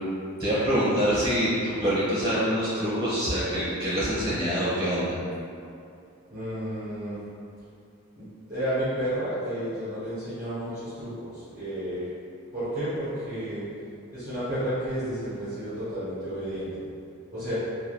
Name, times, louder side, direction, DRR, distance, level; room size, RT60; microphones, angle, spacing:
voice 1, 0.4-5.1, equal, 20° right, -11 dB, 1.2 m, -25 dB
voice 2, 6.3-7.2 8.2-12.0 12.5-13.7 14.1-16.8 17.3-17.5, right 1 dB, 35° right, -14 dB, 0.8 m, -31 dB
3.2 x 2.3 x 2.3 m, 2.5 s
head